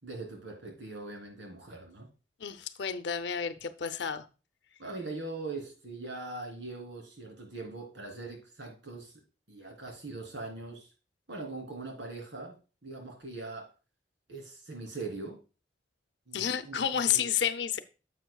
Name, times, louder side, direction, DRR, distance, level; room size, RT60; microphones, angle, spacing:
voice 1, 0.0-2.1 4.8-9.2 9.5-10.9 11.3-13.7 14.3-15.4 16.3-17.3, right 3 dB, 85° right, 1 dB, 3.2 m, -41 dB
voice 2, 2.4-4.2 16.3-17.8, left 8 dB, 75° left, 11 dB, 0.6 m, -30 dB
10.5 x 7.4 x 2.3 m, 0.33 s
head